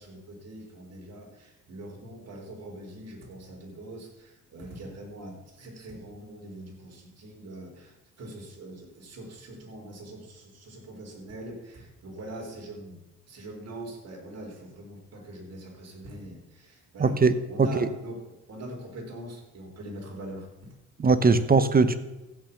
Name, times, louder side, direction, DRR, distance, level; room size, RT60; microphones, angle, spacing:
voice 1, 0.0-13.0 13.3-17.2 17.5-20.8, right 1 dB, 55° right, 0 dB, 4.0 m, -43 dB
voice 2, 17.0-17.9 21.0-21.9, right 4 dB, 30° right, 12 dB, 1.1 m, -21 dB
14.5 x 6.1 x 7.1 m, 1.0 s
cardioid pair, 90°, 30 cm